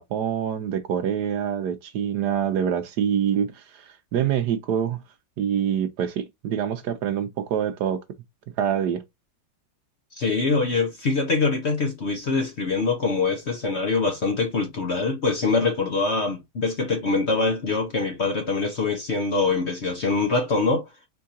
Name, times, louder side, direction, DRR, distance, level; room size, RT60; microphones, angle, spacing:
voice 1, 0.0-5.0 5.4-8.0 8.6-9.0, right 9 dB, 70° right, 1.1 m, -25 dB
voice 2, 10.1-20.8, left 4 dB, 45° left, 1.0 m, -24 dB
4.5 x 3.5 x 2.7 m
omnidirectional pair, 2.0 m